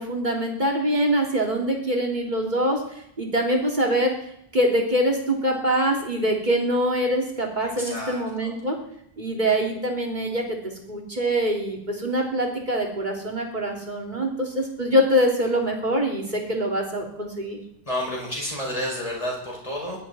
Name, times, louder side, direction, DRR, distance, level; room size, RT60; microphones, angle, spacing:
voice 1, 0.0-2.8 3.2-4.1 4.5-8.8 9.2-17.6, equal, 45° right, 0 dB, 3.0 m, -24 dB
voice 2, 7.8-8.5 17.8-20.0, equal, 30° left, -2 dB, 5.8 m, -30 dB
21.0 x 12.0 x 4.1 m, 0.75 s
omnidirectional pair, 1.1 m